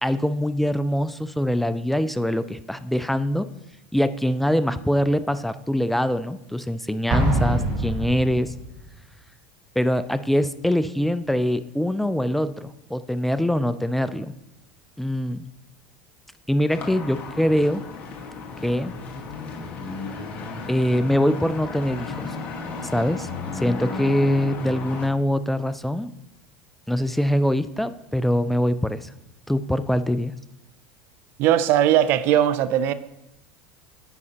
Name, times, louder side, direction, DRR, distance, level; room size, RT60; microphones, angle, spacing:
voice 1, 0.0-3.5 3.9-8.5 9.8-14.3 15.0-15.4 16.5-17.8 18.6-18.9 20.7-22.3 22.8-26.1 26.9-29.1 29.5-30.3, equal, 5° left, 0.3 m, -23 dB
Explosion, 7.1-8.8, right 1 dB, 40° right, 2.2 m, -24 dB
sound 1, 16.7-25.1, left 4 dB, 40° left, 1.5 m, -34 dB
voice 2, 31.4-32.9, right 11 dB, 55° right, 0.4 m, -19 dB
9.7 x 5.3 x 2.9 m
hypercardioid pair, 95°, 4 cm